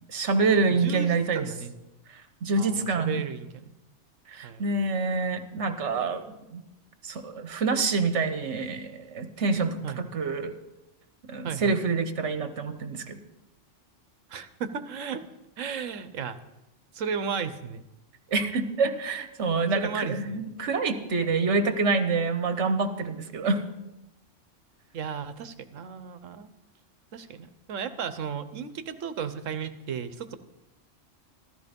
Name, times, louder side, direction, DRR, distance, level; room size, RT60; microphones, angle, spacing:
voice 1, 0.1-1.5 2.1-3.3 4.3-6.6 7.0-10.5 11.3-13.2 18.3-23.6, right 4 dB, 65° right, 9 dB, 1.5 m, -27 dB
voice 2, 0.7-1.7 2.6-3.7 4.4-4.6 9.8-10.0 11.4-11.8 14.3-15.2 15.6-16.4 16.9-17.8 19.7-20.4 24.9-26.5 27.1-30.4, right 6 dB, 80° right, 12 dB, 1.3 m, -34 dB
15.0 x 13.5 x 5.3 m, 0.92 s
omnidirectional pair, 1.3 m